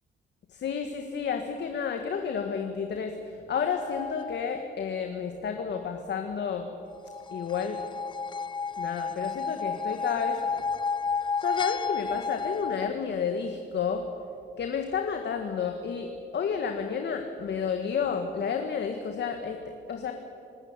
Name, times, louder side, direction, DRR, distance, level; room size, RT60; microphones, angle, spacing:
voice 1, 0.5-6.7 7.3-7.8 8.8-10.7 11.2-14.1 14.6-20.1, left 6 dB, 60° left, 5 dB, 1.8 m, -31 dB
sound 1, 3.6-4.6 7.1-12.9, left 5 dB, 25° left, 0.5 m, -32 dB
26.0 x 13.5 x 9.7 m, 2.6 s
cardioid pair, 90°, 20 cm